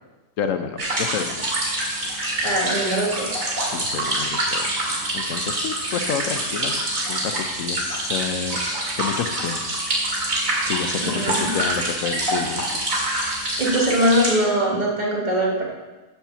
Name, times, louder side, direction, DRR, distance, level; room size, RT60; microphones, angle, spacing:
voice 1, 0.4-1.5 3.7-4.7 5.1-6.8 7.1-8.6 9.0-9.7 10.6-12.8, left 7 dB, 75° left, 8 dB, 1.1 m, -29 dB
sound 1, 0.8-14.3, right 1 dB, 80° right, 2.6 m, -26 dB
voice 2, 2.4-3.5 11.0-11.6 13.6-15.7, equal, 35° right, -3 dB, 1.8 m, -22 dB
9.0 x 4.6 x 7.0 m, 1.1 s
omnidirectional pair, 1.4 m